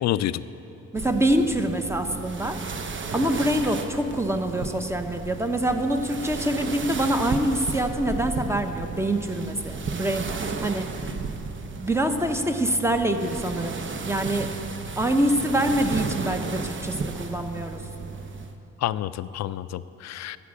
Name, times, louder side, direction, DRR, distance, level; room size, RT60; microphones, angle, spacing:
voice 1, 0.0-0.4 18.8-20.4, left 12 dB, 60° left, 15 dB, 0.4 m, -28 dB
voice 2, 0.9-2.6 3.1-10.9 11.8-14.5 15.0-17.8, right 1 dB, 10° right, 6 dB, 0.8 m, -25 dB
sound 1, 1.0-18.5, right 4 dB, 40° right, 0.8 m, -34 dB
11.5 x 7.5 x 7.2 m, 2.9 s
cardioid pair, 90°, 30 cm